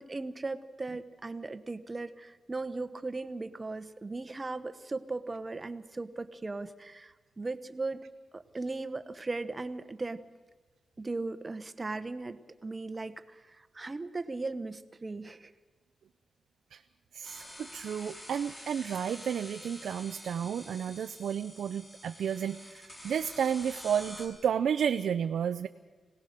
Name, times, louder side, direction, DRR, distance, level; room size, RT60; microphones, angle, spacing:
voice 1, 0.0-8.0 8.3-10.2 11.0-15.5, right 3 dB, 25° right, 11 dB, 1.0 m, -38 dB
voice 2, 17.1-25.7, right 8 dB, 85° right, 8 dB, 0.6 m, -32 dB
sound 1, 17.2-24.3, equal, 20° left, 5.1 m, -47 dB
25.5 x 18.0 x 6.7 m, 1.3 s
wide cardioid pair, 120°, 0 cm